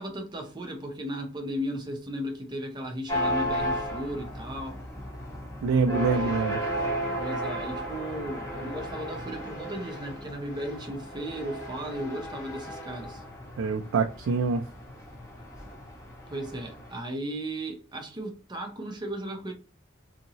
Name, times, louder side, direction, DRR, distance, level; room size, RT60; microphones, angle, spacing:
voice 1, 0.0-4.8 7.2-13.2 16.3-19.5, equal, 20° right, 0.7 m, -35 dB
sound 1, 3.1-17.0, equal, 15° left, 1.3 m, -34 dB
voice 2, 5.6-6.6 13.6-14.6, right 4 dB, 90° right, 0.4 m, -25 dB
2.8 x 2.7 x 2.8 m
head